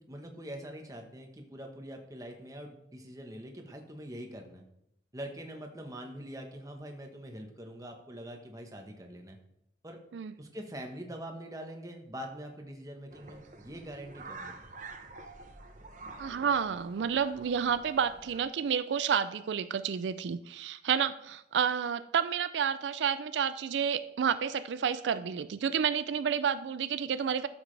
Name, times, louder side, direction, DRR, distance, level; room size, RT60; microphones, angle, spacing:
voice 1, 0.1-4.6 5.1-9.4 9.8-10.0 10.4-14.7, equal, 20° right, 3 dB, 1.1 m, -44 dB
sound 1, 13.1-18.4, right 3 dB, 45° right, 0.9 m, -48 dB
voice 2, 16.2-27.5, right 7 dB, 85° right, 13 dB, 0.4 m, -30 dB
12.5 x 7.2 x 3.3 m, 0.82 s
head